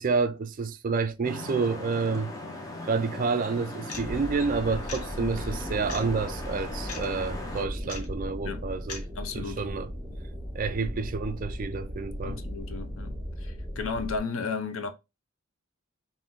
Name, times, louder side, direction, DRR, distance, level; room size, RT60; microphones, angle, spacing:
voice 1, 0.0-2.3 2.8-9.0 9.3-9.9 10.5-12.4, right 4 dB, 40° right, 0.3 m, -29 dB
sound 1, 1.2-7.6, left 2 dB, 15° left, 0.6 m, -39 dB
sound 2, 3.9-4.1 4.9-5.1 5.9-6.0 6.9-7.1 7.9-8.1 8.9-9.0, left 4 dB, 90° left, 1.0 m, -38 dB
sound 3, 3.9-14.2, equal, 5° right, 1.1 m, -37 dB
voice 2, 9.2-9.6 12.2-14.9, left 4 dB, 65° left, 0.6 m, -34 dB
3.7 x 2.6 x 3.5 m
head